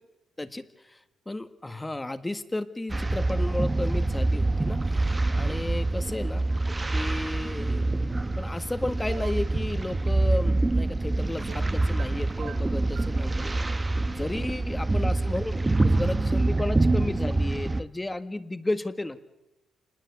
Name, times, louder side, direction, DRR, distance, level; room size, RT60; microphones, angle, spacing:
voice 1, 0.4-6.5 6.9-7.9 8.4-13.5 14.1-19.2, left 2 dB, 15° left, 10 dB, 1.7 m, -33 dB
sound 1, 2.9-17.8, right 2 dB, 20° right, 1.2 m, -26 dB
sound 2, 9.1-9.4 11.5-12.1 12.4-13.2, right 8 dB, 65° right, 1.2 m, -43 dB
27.0 x 20.5 x 8.4 m, 0.96 s
cardioid pair, 90°, 0 cm